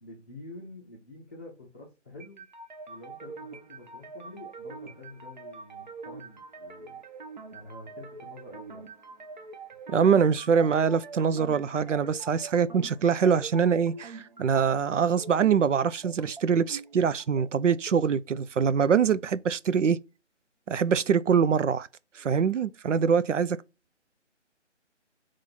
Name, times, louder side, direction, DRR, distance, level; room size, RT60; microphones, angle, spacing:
voice 1, 0.0-2.4 2.9-7.0 7.5-8.8, left 2 dB, 10° left, 0.6 m, -47 dB
sound 1, 2.2-18.2, right 4 dB, 40° right, 0.6 m, -44 dB
voice 2, 9.9-20.0 20.7-21.9 22.2-23.6, right 7 dB, 85° right, 0.5 m, -24 dB
3.9 x 3.2 x 4.1 m
figure-of-eight pair, 160°, 36 cm